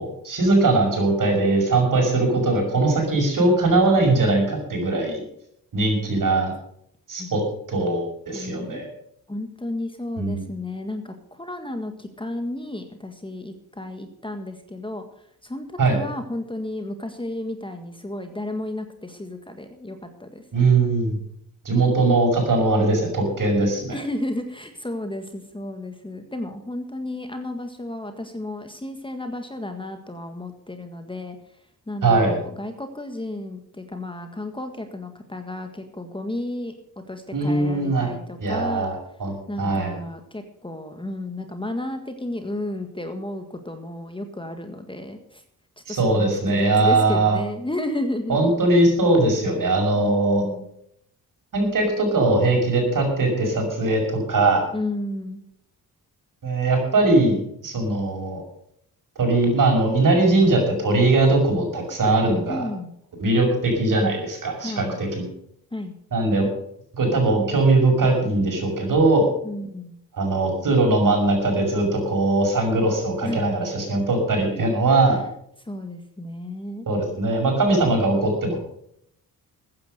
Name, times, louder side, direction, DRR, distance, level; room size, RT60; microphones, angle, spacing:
voice 1, 0.0-5.2 5.7-6.5 7.1-7.4 7.7-8.9 10.2-10.4 15.8-15.9 20.5-21.2 21.6-24.0 32.0-32.4 37.3-38.1 38.4-40.0 45.9-47.4 48.3-50.4 51.5-54.6 56.4-58.4 59.2-62.7 63.2-65.3 66.1-66.5 66.9-69.3 70.1-75.2 76.9-78.6, right 2 dB, 55° right, 3 dB, 6.0 m, -20 dB
voice 2, 8.3-8.8 9.3-15.0 15.4-20.4 23.9-31.4 31.9-36.7 37.1-38.9 39.5-45.4 45.9-48.5 50.0-50.7 54.7-55.4 62.5-62.9 64.6-65.0 65.7-65.9 69.4-70.0 73.2-73.4 74.5-74.6 75.1-75.3 75.7-76.9, left 1 dB, 15° left, 6 dB, 1.7 m, -32 dB
14.5 x 9.7 x 6.6 m, 0.71 s
cardioid pair, 85°, 38 cm